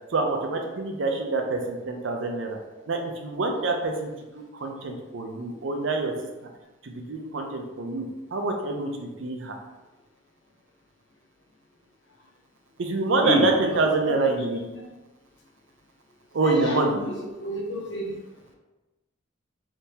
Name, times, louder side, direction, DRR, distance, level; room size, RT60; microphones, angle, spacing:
voice 1, 0.1-2.6 2.9-4.1 4.6-6.1 6.8-8.0 8.3-9.5 12.8-14.6 16.3-16.9, right 3 dB, 80° right, 3 dB, 0.5 m, -26 dB
voice 2, 16.4-17.1 17.4-18.2, left 1 dB, 70° left, 0 dB, 0.7 m, -28 dB
3.4 x 2.9 x 2.8 m, 1.1 s
head